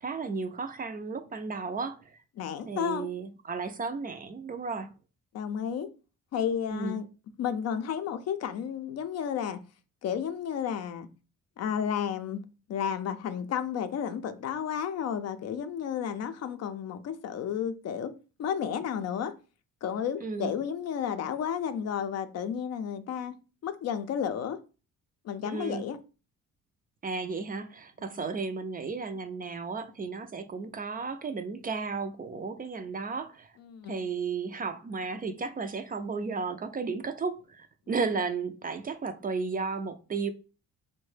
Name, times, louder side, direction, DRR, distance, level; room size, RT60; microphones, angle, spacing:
voice 1, 0.0-2.2 2.6-4.9 6.7-7.0 20.2-20.5 25.4-25.9 27.0-33.5 33.9-40.3, right 4 dB, 30° right, 0.4 m, -34 dB
voice 2, 2.4-3.1 5.3-5.9 6.3-7.0 7.4-9.6 10.0-11.1 11.6-12.4 12.7-18.1 18.4-19.3 19.8-23.4 23.6-24.6 25.2-26.0 33.7-34.0, left 8 dB, 60° left, 0.5 m, -32 dB
3.6 x 2.1 x 3.2 m
cardioid pair, 90°, 30 cm